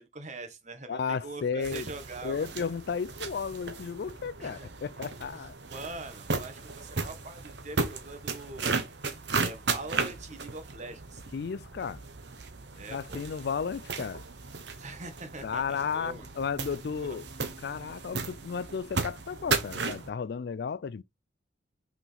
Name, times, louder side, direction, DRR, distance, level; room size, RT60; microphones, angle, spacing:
voice 1, 0.0-2.5 4.4-4.7 5.3-8.8 9.3-11.2 12.7-13.2 14.8-16.2 17.0-17.2, right 2 dB, 40° right, 1.3 m, -43 dB
voice 2, 0.9-1.9 2.2-5.6 11.3-12.0 12.9-14.2 15.4-17.3 17.6-21.0, left 6 dB, 55° left, 0.4 m, -33 dB
sound 1, 1.6-20.1, right 4 dB, 60° right, 1.1 m, -35 dB
5.8 x 4.8 x 3.4 m
head